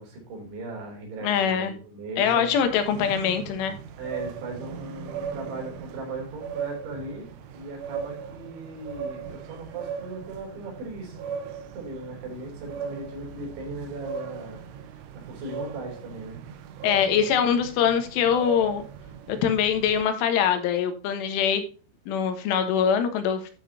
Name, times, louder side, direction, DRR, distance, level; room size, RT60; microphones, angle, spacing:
voice 1, 0.0-2.5 2.9-3.1 4.0-7.3 7.5-11.2 11.7-14.6 14.9-16.4, right 2 dB, 75° right, 0 dB, 5.8 m, -38 dB
voice 2, 1.2-1.7 2.2-3.8 16.8-18.9 19.3-21.6 22.1-23.5, left 8 dB, 90° left, 7 dB, 3.8 m, -23 dB
sound 1, 2.6-20.0, right 7 dB, 90° right, 3.4 m, -38 dB
12.0 x 7.4 x 2.8 m, 0.36 s
omnidirectional pair, 5.4 m